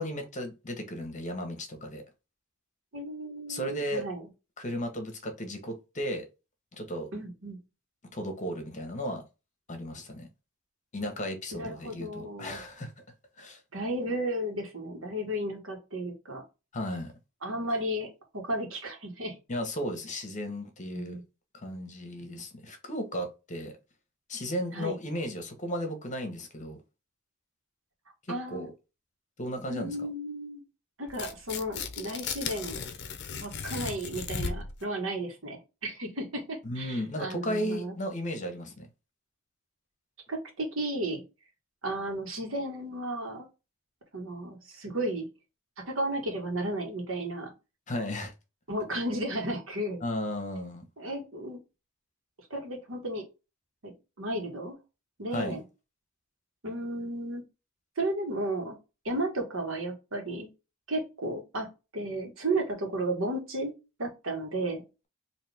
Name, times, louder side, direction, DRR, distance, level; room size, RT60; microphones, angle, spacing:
voice 1, 0.0-2.0 3.5-4.1 4.6-6.3 6.7-7.1 8.1-9.2 9.7-10.3 10.9-12.9 13.4-13.6 16.7-17.1 19.5-21.2 21.5-23.7 24.3-26.8 28.3-28.7 29.4-30.0 36.6-38.9 47.9-48.3 50.0-50.8 55.3-55.6, equal, 40° left, 1.1 m, -35 dB
voice 2, 2.9-4.2 7.1-7.6 11.5-12.6 13.7-16.4 17.4-19.4 20.9-21.2 22.2-22.4 24.7-25.0 28.3-28.7 29.7-30.6 31.0-32.8 33.4-37.9 40.3-41.2 41.8-43.5 44.1-45.3 45.9-47.5 48.7-50.0 51.0-51.6 52.5-53.2 53.8-54.8 55.2-55.6 56.6-57.4 58.0-58.8 59.0-60.5 60.9-64.8, right 1 dB, 80° right, 1.5 m, -34 dB
Tearing, 31.1-34.8, left 6 dB, 60° left, 0.6 m, -36 dB
4.1 x 2.8 x 3.4 m
head